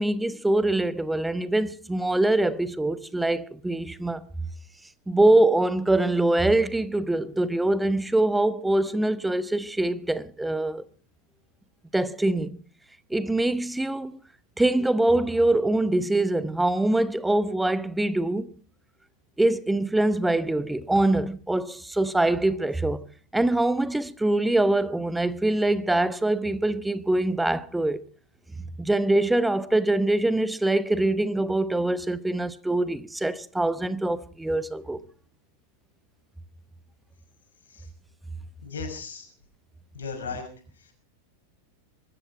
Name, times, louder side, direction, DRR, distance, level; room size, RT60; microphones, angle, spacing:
voice 1, 0.0-4.2 5.1-10.8 11.9-12.6 13.1-14.2 14.6-18.5 19.4-23.0 23.3-28.0 28.8-35.0, right 2 dB, 5° right, 0.9 m, -24 dB
voice 2, 38.6-39.2 39.9-40.5, left 5 dB, 65° left, 5.9 m, -35 dB
23.5 x 13.5 x 4.4 m
figure-of-eight pair, 90°, 0 cm